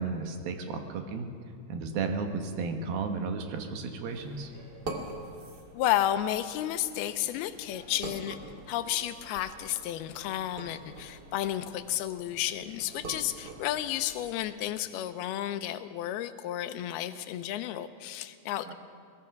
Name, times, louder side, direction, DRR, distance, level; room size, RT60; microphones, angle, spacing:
voice 1, 0.0-1.3 1.7-4.5 18.7-18.8, right 4 dB, 70° right, 5 dB, 2.9 m, -33 dB
sound 1, 4.1-14.5, right 2 dB, 40° right, 1.5 m, -45 dB
voice 2, 5.7-8.4 8.7-18.7, left 12 dB, 80° left, 11 dB, 2.5 m, -32 dB
22.0 x 19.5 x 6.0 m, 2.3 s
omnidirectional pair, 4.8 m